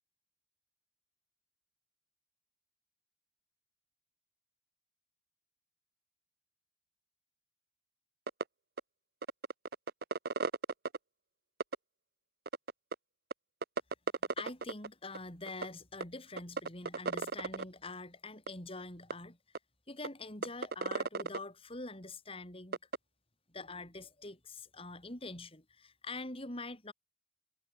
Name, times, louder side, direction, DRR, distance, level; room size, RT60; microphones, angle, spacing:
sound 1, 8.3-8.4 8.8-8.9 9.2-11.0 11.6-11.8 12.5-12.9 13.3-13.4 13.6-14.9 15.1-15.2 15.5-15.7 16.0-16.1 16.4-17.6 18.5-18.6 19.1-19.2 19.5-19.6 20.0-20.1 20.4-21.4 22.7-23.0, right 4 dB, 60° right, 0.8 m, -34 dB
voice 1, 14.4-19.4 19.9-22.8 23.5-26.9, left 2 dB, 35° left, 6.3 m, -45 dB
head